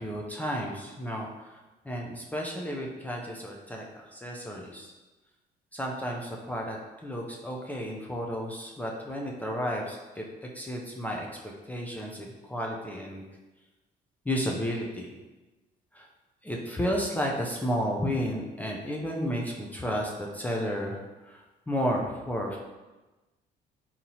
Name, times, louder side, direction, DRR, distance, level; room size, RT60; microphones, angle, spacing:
voice 1, 0.0-1.6 1.9-3.8 4.1-4.9 5.7-6.8 7.0-10.2 10.5-11.3 11.7-13.2 14.3-15.1 15.9-16.1 16.4-21.0 21.2-22.6, equal, 10° left, -1 dB, 0.4 m, -32 dB
3.9 x 2.8 x 2.8 m, 1.1 s
cardioid pair, 110°, 17 cm